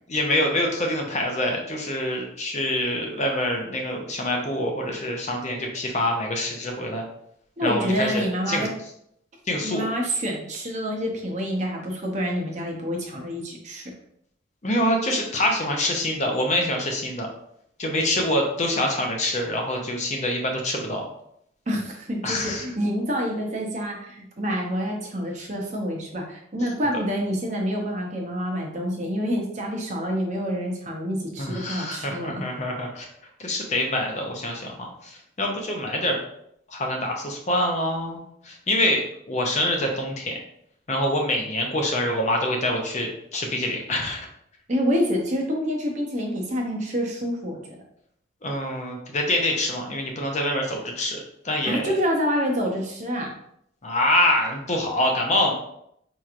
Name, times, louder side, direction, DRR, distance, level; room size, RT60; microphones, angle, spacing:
voice 1, 0.1-7.0 7.6-8.7 9.5-9.8 14.6-17.3 17.8-21.0 22.2-22.6 31.4-33.1 33.4-36.2 36.7-39.0 39.3-40.4 40.9-44.3 48.4-51.2 51.4-51.9 53.8-55.5, left 1 dB, 35° left, 1 dB, 0.6 m, -25 dB
voice 2, 7.6-8.7 9.6-13.9 21.7-32.4 44.7-47.8 51.6-53.3, equal, 35° right, 0 dB, 0.7 m, -27 dB
4.5 x 2.9 x 2.5 m, 0.72 s
head